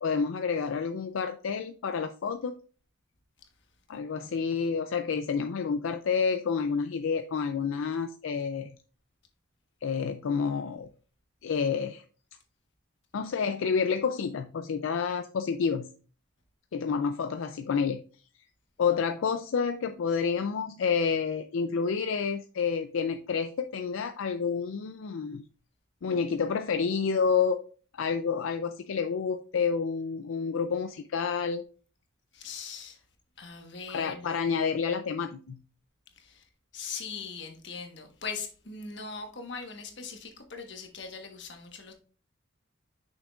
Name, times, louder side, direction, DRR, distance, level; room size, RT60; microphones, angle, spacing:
voice 1, 0.0-2.6 3.9-8.7 9.8-10.9 11.4-12.0 13.1-15.9 16.7-18.0 18.8-25.4 26.0-27.6 27.9-31.6 33.9-35.6, left 6 dB, 80° left, 0.4 m, -29 dB
voice 2, 32.3-33.0 33.4-34.3 36.2-41.9, left 5 dB, 60° left, 1.3 m, -40 dB
6.5 x 5.9 x 2.4 m
head